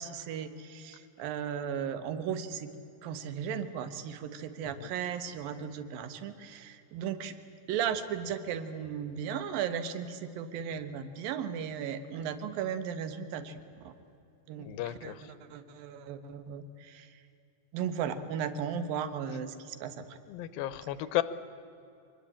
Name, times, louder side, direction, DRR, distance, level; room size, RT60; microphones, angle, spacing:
voice 1, 0.0-2.7 3.0-7.3 7.7-13.6 13.8-13.9 14.5-15.1 15.5-17.1 17.7-20.2, right 8 dB, 75° right, 10 dB, 3.0 m, -36 dB
voice 2, 14.6-15.2 20.3-21.2, left 14 dB, 85° left, 14 dB, 2.7 m, -34 dB
25.5 x 20.5 x 8.7 m, 2.7 s
omnidirectional pair, 4.2 m